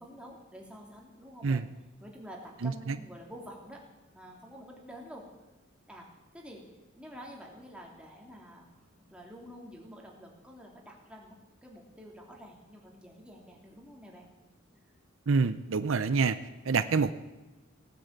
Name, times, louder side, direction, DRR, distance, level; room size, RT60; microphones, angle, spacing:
voice 1, 0.0-1.6 2.0-3.8 4.1-5.2 5.9-6.1 6.3-6.6 7.0-8.8 9.1-14.3, equal, 5° right, -1 dB, 3.1 m, -48 dB
voice 2, 2.6-2.9 15.3-16.4 16.6-17.1, right 4 dB, 70° right, 12 dB, 0.6 m, -26 dB
17.5 x 9.9 x 8.1 m, 1.1 s
head